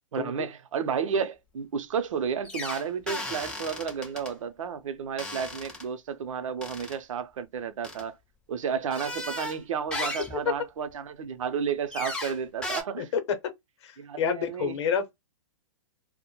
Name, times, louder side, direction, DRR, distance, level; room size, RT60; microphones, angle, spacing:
voice 1, 0.1-8.2 8.5-13.1 14.0-14.8, right 7 dB, 80° right, 0.6 m, -32 dB
sound 1, 2.4-4.3 5.2-5.8 6.6-7.0 7.8-8.0 8.9-9.6 9.9-10.4 11.9-12.4 12.6-12.8, left 1 dB, 5° left, 0.3 m, -35 dB
voice 2, 13.0-13.5 13.8-15.2, left 7 dB, 60° left, 0.7 m, -29 dB
2.1 x 2.1 x 2.9 m
hypercardioid pair, 145°, 16 cm